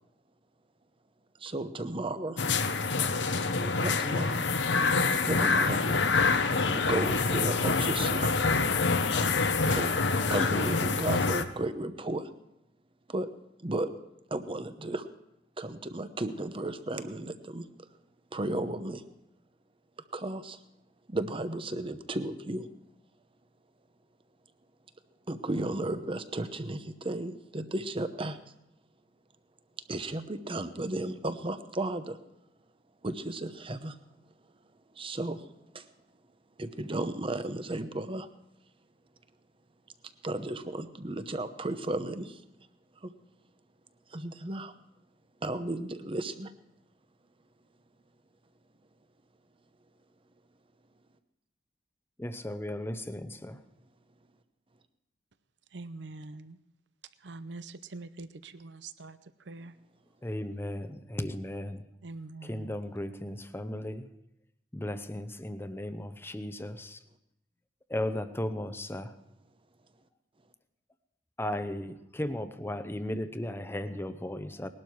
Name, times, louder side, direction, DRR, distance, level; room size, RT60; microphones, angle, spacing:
voice 1, 1.4-2.4 3.5-4.5 5.2-6.0 6.7-8.3 9.1-9.4 9.7-12.3 13.1-13.3 13.6-13.9 14.3-15.1 15.6-17.7 18.3-19.0 20.1-20.6 21.1-22.7 25.3-28.4 29.9-32.2 33.0-34.0 35.0-35.4 35.7-35.9 36.6-38.3 40.2-42.4 43.0-43.1 44.1-44.7 45.4-46.5, right 2 dB, 30° right, 10 dB, 0.9 m, -34 dB
sound 1, 2.4-11.4, left 4 dB, 80° left, 0.9 m, -26 dB
voice 2, 52.2-53.6 60.2-61.8 62.4-64.1 64.7-67.0 67.9-69.1 71.4-74.7, left 1 dB, 15° left, 10 dB, 0.8 m, -35 dB
voice 3, 55.7-56.6 57.2-59.2 59.5-59.7 62.0-62.8, right 3 dB, 75° right, 13 dB, 0.7 m, -44 dB
19.5 x 12.0 x 4.7 m, 0.84 s
head